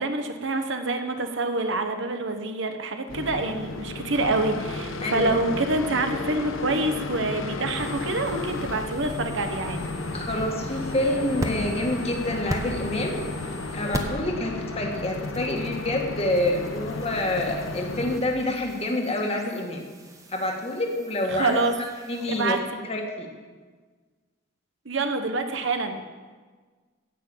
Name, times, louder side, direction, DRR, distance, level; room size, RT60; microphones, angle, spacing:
voice 1, 0.0-9.8 21.3-21.7 22.4-22.6 24.8-26.0, right 2 dB, 65° right, 6 dB, 1.1 m, -26 dB
sound 1, 3.1-18.2, left 2 dB, 75° left, 1.1 m, -33 dB
voice 2, 5.0-5.3 10.1-13.3 13.7-19.8 20.3-21.6 22.1-22.6 22.8-23.3, left 1 dB, 30° left, 2 dB, 1.7 m, -27 dB
sound 2, 7.7-14.3 14.6-22.6, right 1 dB, 15° right, 1.0 m, -39 dB
15.5 x 6.1 x 8.9 m, 1.5 s
head